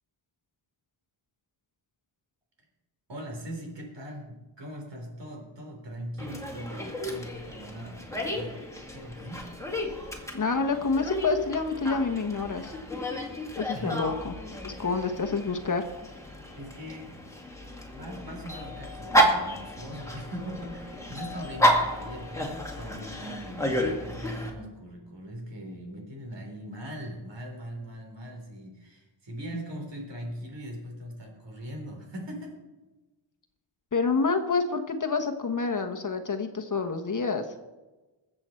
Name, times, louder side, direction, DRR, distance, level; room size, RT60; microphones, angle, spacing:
voice 1, 3.1-8.6 8.9-9.5 13.7-14.0 14.7-14.8 16.6-17.1 17.9-32.6, equal, 65° right, 1 dB, 4.0 m, -40 dB
Dog, 6.2-24.5, equal, 5° left, 2.1 m, -31 dB
voice 2, 10.3-12.7 13.6-14.3 14.6-15.9 33.9-37.4, left 4 dB, 40° left, 5 dB, 1.2 m, -28 dB
21.5 x 7.9 x 4.5 m, 1.1 s
wide cardioid pair, 115°, 47 cm